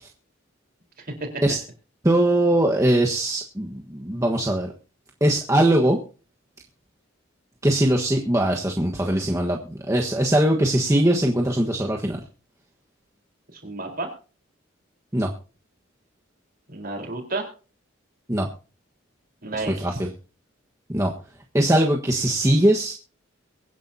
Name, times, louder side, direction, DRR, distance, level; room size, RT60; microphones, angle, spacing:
voice 1, 1.0-1.3 13.5-14.1 16.7-17.5 19.4-20.0, right 2 dB, 45° right, 3 dB, 4.2 m, -31 dB
voice 2, 2.0-4.7 5.2-6.0 7.6-12.2 15.1-15.3 18.3-18.5 19.7-20.1 20.9-21.1 21.5-22.9, right 1 dB, 15° right, 0 dB, 1.4 m, -21 dB
23.5 x 10.5 x 2.8 m, 0.35 s
head